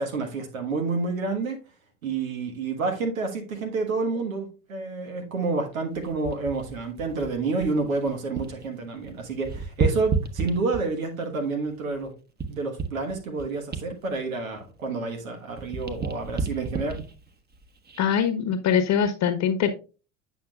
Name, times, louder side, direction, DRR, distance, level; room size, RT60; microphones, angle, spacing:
voice 1, 0.0-1.6 2.0-12.1 12.5-17.0, right 3 dB, 90° right, 4 dB, 1.5 m, -29 dB
sound 1, 5.9-8.7 9.0-11.1 11.6-15.2 15.5-18.3 18.8-19.0, right 5 dB, 25° right, 1.2 m, -32 dB
voice 2, 18.0-19.7, left 8 dB, 45° left, 7 dB, 1.1 m, -23 dB
8.4 x 6.1 x 2.4 m, 0.33 s
hypercardioid pair, 80°, 40 cm